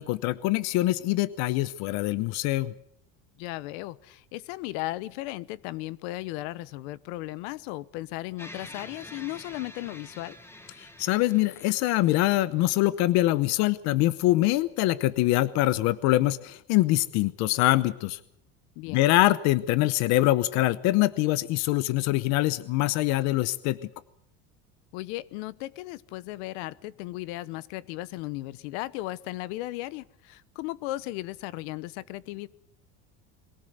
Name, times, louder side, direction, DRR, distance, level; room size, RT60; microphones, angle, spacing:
voice 1, 0.0-2.7 10.8-18.2 18.9-23.8, left 17 dB, 55° left, 16 dB, 0.8 m, -24 dB
voice 2, 3.4-10.4 18.8-19.1 24.9-32.5, left 17 dB, 85° left, 19 dB, 1.0 m, -36 dB
sound 1, 8.4-12.8, left 1 dB, 10° left, 1.6 m, -47 dB
22.5 x 17.5 x 7.9 m, 0.70 s
cardioid pair, 170°, 33 cm